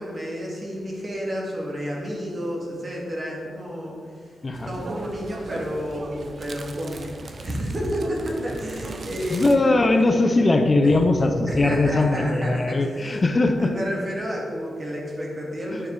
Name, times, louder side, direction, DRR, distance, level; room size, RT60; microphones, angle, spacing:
voice 1, 0.0-4.3 4.7-9.4 10.0-10.2 10.8-13.2 13.6-15.9, equal, 35° right, -2 dB, 2.4 m, -31 dB
voice 2, 4.4-4.7 9.3-13.7 15.7-15.8, left 2 dB, 35° left, 5 dB, 0.7 m, -20 dB
sound 1, 4.5-9.6, right 3 dB, 50° right, 0.8 m, -38 dB
8.9 x 6.7 x 4.8 m, 2.1 s
cardioid pair, 90°, 0 cm